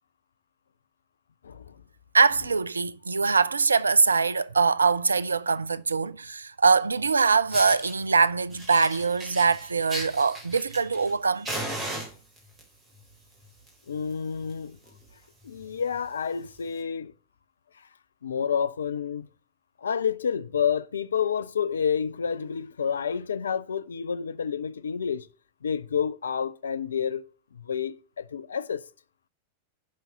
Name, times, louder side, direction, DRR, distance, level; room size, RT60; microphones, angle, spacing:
voice 1, 1.4-1.7 13.9-14.8 15.4-17.1 18.2-19.3 19.8-25.3 25.6-27.2 27.5-28.8, left 7 dB, 70° left, 0.5 m, -29 dB
voice 2, 2.1-11.5, right 5 dB, 75° right, 0.4 m, -23 dB
Fire, 7.0-7.1 7.5-7.9 8.5-11.1 11.4-12.6 13.4-13.7 14.0-14.1 14.5-14.6 14.8-15.1 15.6-15.7 16.6-16.7, right 1 dB, 25° right, 3.8 m, -36 dB
11.0 x 5.4 x 5.9 m
figure-of-eight pair, 90°, 0 cm